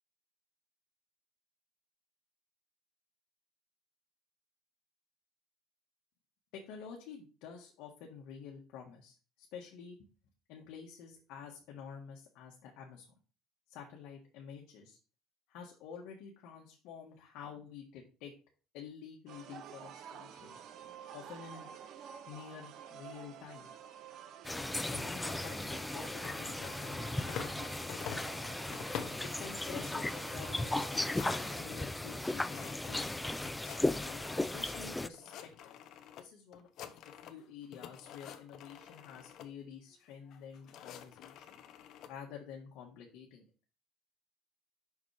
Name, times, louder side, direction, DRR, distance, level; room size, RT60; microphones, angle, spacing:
voice 1, 6.5-10.0 10.5-13.1 13.7-15.0 15.5-18.3 18.7-20.6 21.1-21.7 22.3-23.7 24.9-28.5 29.2-33.1 33.9-35.8 36.2-36.9 37.2-41.6 42.1-43.4, left 7 dB, 75° left, -1 dB, 1.5 m, -49 dB
sound 1, 19.3-31.6, right 8 dB, 55° right, 0.7 m, -50 dB
sound 2, 24.4-35.1, left 2 dB, 10° left, 0.3 m, -36 dB
sound 3, 26.0-27.6 27.9-29.3 29.7-30.2 30.5-30.6 30.8-34.8 35.1-36.2 36.5-37.4 37.7-39.5 40.3-42.1, left 9 dB, 60° left, 0.9 m, -48 dB
7.1 x 6.1 x 3.4 m, 0.35 s
cardioid pair, 130°, 0 cm